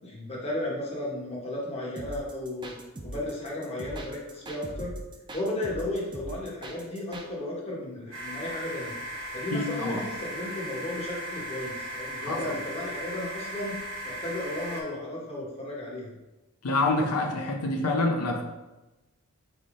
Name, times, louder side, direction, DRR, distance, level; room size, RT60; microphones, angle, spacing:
voice 1, 0.0-2.7 3.0-4.9 5.3-8.9 9.3-13.8 14.0-16.1, left 1 dB, 25° left, -4 dB, 1.0 m, -34 dB
sound 1, 2.0-7.3, right 1 dB, 20° right, 0.4 m, -41 dB
sound 2, 8.1-14.8, right 1 dB, 55° right, 1.0 m, -37 dB
voice 2, 9.5-10.0 12.2-12.4 16.6-18.4, left 2 dB, 90° left, 1 dB, 0.6 m, -26 dB
3.9 x 3.5 x 3.6 m, 1.0 s
head